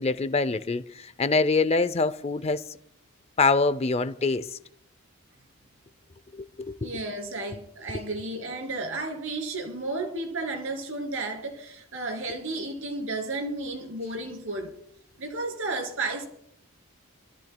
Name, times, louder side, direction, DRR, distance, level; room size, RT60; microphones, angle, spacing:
voice 1, 0.0-2.6 3.4-4.6 6.3-6.9, left 3 dB, 25° left, 0.4 m, -25 dB
voice 2, 6.8-14.7 15.2-16.3, right 2 dB, 60° right, 2.7 m, -33 dB
27.0 x 13.5 x 2.2 m
head